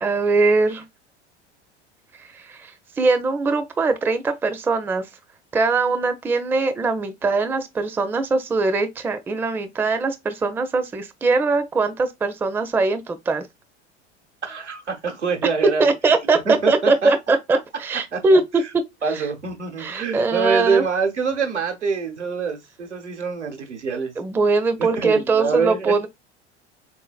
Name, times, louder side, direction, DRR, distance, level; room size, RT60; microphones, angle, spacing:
voice 1, 0.0-0.8 2.2-2.7 3.0-5.1 5.5-13.5 15.6-19.3 19.8-20.8 24.2-26.1, right 3 dB, 5° right, 0.4 m, -21 dB
voice 2, 14.4-15.8 16.4-17.4 18.1-18.2 19.0-24.1 24.8-26.1, right 5 dB, 90° right, 1.0 m, -25 dB
3.9 x 2.6 x 2.3 m
figure-of-eight pair, 80°, 34 cm